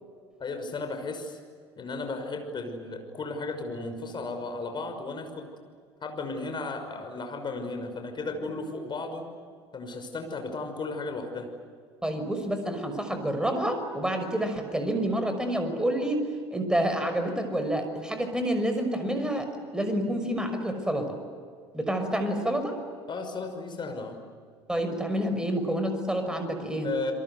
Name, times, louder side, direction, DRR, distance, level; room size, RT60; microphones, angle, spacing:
voice 1, 0.4-1.4 1.8-5.5 6.0-9.3 9.7-11.5 23.1-24.2 26.8-27.1, left 3 dB, 35° left, 6 dB, 5.9 m, -34 dB
voice 2, 12.0-21.2 21.7-22.8 24.7-26.9, right 1 dB, 5° right, 6 dB, 5.9 m, -28 dB
29.0 x 23.5 x 8.1 m, 2.1 s
figure-of-eight pair, 65°, 14 cm